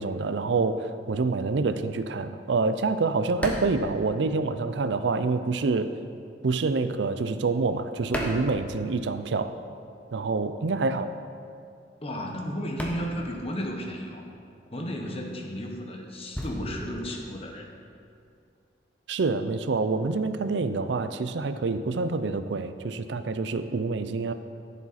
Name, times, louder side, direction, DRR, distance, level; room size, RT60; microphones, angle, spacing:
voice 1, 0.0-5.9 6.4-9.6 10.1-11.1 19.1-24.3, right 3 dB, 75° right, 10 dB, 0.5 m, -27 dB
sound 1, 3.4-4.9 5.2-9.3 9.6-18.3, equal, 10° left, 1.0 m, -38 dB
voice 2, 12.0-14.3 14.7-17.8, equal, 35° left, 2 dB, 1.2 m, -33 dB
14.5 x 7.2 x 4.2 m, 2.4 s
head